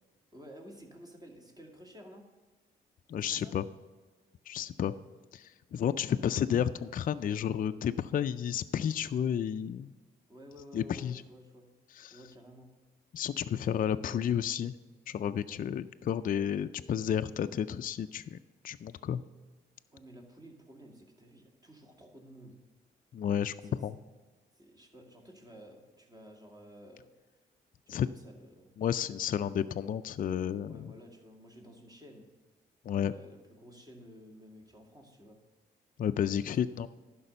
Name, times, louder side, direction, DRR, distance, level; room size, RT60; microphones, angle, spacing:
voice 1, 0.3-2.3 3.3-3.6 10.3-11.7 12.1-12.7 13.5-13.9 19.9-22.6 23.6-23.8 24.5-27.1 27.9-28.7 30.7-32.3 33.0-35.4 36.5-36.6, equal, 20° right, 2 dB, 2.1 m, -53 dB
voice 2, 3.1-3.6 4.5-4.9 5.3-9.9 10.7-11.2 12.0-12.2 13.1-14.7 15.1-18.4 18.6-19.2 23.1-24.0 27.9-28.1 28.8-30.9 32.9-33.1 36.0-36.9, left 9 dB, 45° left, 10 dB, 0.4 m, -31 dB
11.0 x 5.3 x 6.8 m, 1.3 s
supercardioid pair, 60°, 20 cm